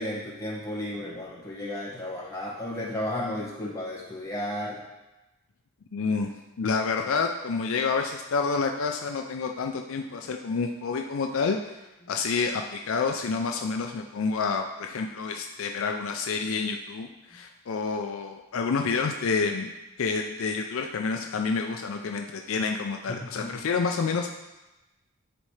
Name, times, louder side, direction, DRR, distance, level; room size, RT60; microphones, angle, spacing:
voice 1, 0.0-4.8 12.0-12.1 23.1-23.6, left 1 dB, 15° left, -6 dB, 1.6 m, -33 dB
voice 2, 5.9-6.3 6.6-11.8 12.1-19.7 20.0-24.3, left 4 dB, 65° left, 4 dB, 0.4 m, -28 dB
11.0 x 4.2 x 3.2 m, 1.0 s
head